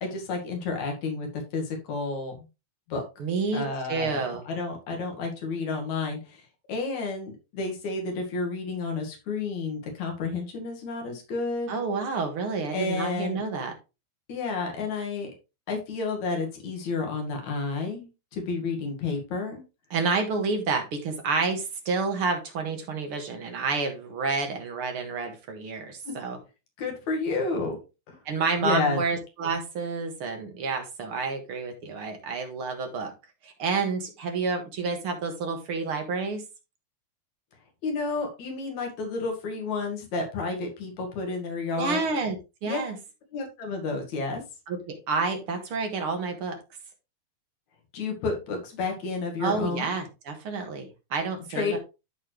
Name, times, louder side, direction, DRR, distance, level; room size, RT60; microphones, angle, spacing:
voice 1, 0.0-2.4 2.9-3.0 3.5-6.4 6.7-11.8 12.7-13.4 14.3-15.3 15.7-19.6 26.0-26.1 26.8-27.8 28.1-28.2 28.6-29.0 37.8-42.0 42.7-42.8 43.3-44.4 47.9-49.9 51.5-51.8, left 4 dB, 70° left, 2 dB, 3.3 m, -31 dB
voice 2, 3.2-4.5 11.7-13.8 19.9-26.4 28.3-33.1 33.4-36.4 41.8-43.0 44.7-46.6 49.4-51.8, right 4 dB, 50° right, 5 dB, 2.1 m, -29 dB
13.0 x 4.3 x 3.3 m, 0.27 s
omnidirectional pair, 3.4 m